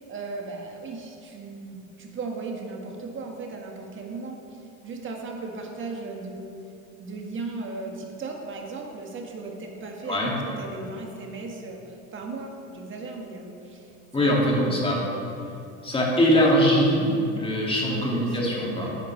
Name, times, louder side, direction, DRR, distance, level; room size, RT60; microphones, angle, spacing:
voice 1, 0.1-6.5 7.0-14.8 17.6-19.0, right 3 dB, 35° right, 1 dB, 1.6 m, -37 dB
voice 2, 14.1-15.0 15.8-18.9, equal, 15° left, -3 dB, 2.2 m, -22 dB
10.5 x 9.1 x 3.2 m, 2.6 s
supercardioid pair, 105°, 36 cm